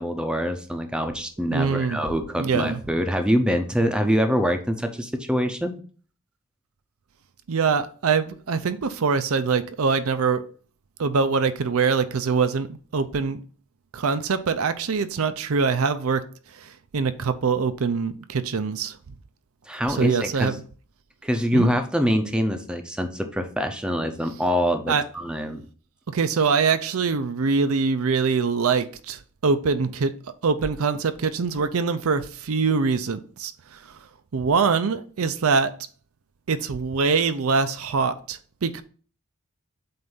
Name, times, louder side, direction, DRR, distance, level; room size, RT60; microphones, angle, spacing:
voice 1, 0.0-5.8 19.7-20.5 21.2-25.6, equal, 5° right, 0.6 m, -24 dB
voice 2, 1.5-2.0 2.4-2.8 7.5-10.4 11.0-13.4 13.9-16.2 16.6-19.0 19.9-20.5 21.5-21.7 24.9-25.0 26.1-30.1 30.4-33.8 34.3-35.8 36.5-38.8, right 5 dB, 70° right, 0.5 m, -23 dB
7.7 x 2.6 x 5.5 m
head